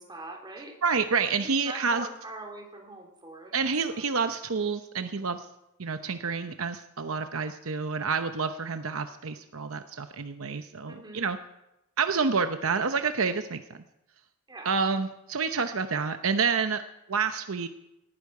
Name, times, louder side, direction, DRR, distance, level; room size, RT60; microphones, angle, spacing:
voice 1, 0.0-0.8 1.4-3.6 3.9-4.0 10.9-11.2 14.5-14.8, right 2 dB, 20° right, 1 dB, 3.6 m, -43 dB
voice 2, 0.8-2.1 3.5-5.5 5.8-11.4 12.0-13.8 14.6-16.8 17.1-17.7, right 5 dB, 70° right, 8 dB, 0.8 m, -28 dB
19.0 x 15.0 x 4.9 m, 0.90 s
head